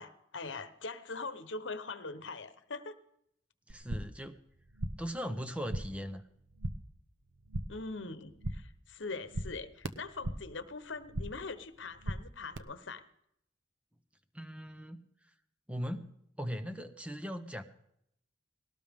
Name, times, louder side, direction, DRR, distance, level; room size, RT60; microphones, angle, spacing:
voice 1, 0.0-2.9 7.7-13.1, left 3 dB, 75° left, 11 dB, 1.1 m, -42 dB
voice 2, 3.7-4.4 5.0-6.3 14.3-15.0 15.7-16.1 16.4-17.6, equal, 5° right, 9 dB, 0.9 m, -39 dB
sound 1, 3.7-4.3 4.5-5.2 5.4-6.1 6.3-6.9 7.2-7.9 8.2-8.8 9.1-10.6 10.9-11.5 11.8-12.6, right 1 dB, 85° right, 1.0 m, -39 dB
19.5 x 18.0 x 3.7 m, 0.76 s
head